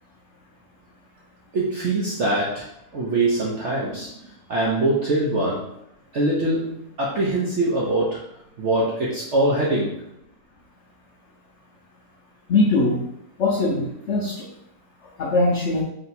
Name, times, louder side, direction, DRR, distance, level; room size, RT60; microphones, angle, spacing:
voice 1, 1.5-2.7 2.9-4.2 4.5-5.7 6.1-8.2 8.6-10.0, right 2 dB, 70° right, -4 dB, 0.6 m, -23 dB
voice 2, 12.5-13.0 13.4-14.5 15.2-15.8, left 2 dB, 85° left, -2 dB, 0.6 m, -21 dB
3.2 x 2.8 x 4.1 m, 0.77 s
omnidirectional pair, 2.0 m